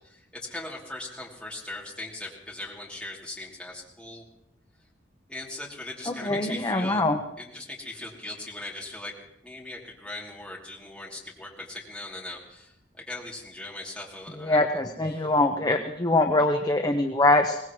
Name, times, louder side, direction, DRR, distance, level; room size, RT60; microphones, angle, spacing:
voice 1, 0.0-4.2 5.3-7.0 7.4-9.1 9.4-12.7 13.1-14.6, left 2 dB, 5° left, -4 dB, 2.8 m, -39 dB
voice 2, 6.1-7.2 14.4-17.6, left 2 dB, 20° left, 4 dB, 0.7 m, -23 dB
23.0 x 18.5 x 3.1 m, 0.83 s
head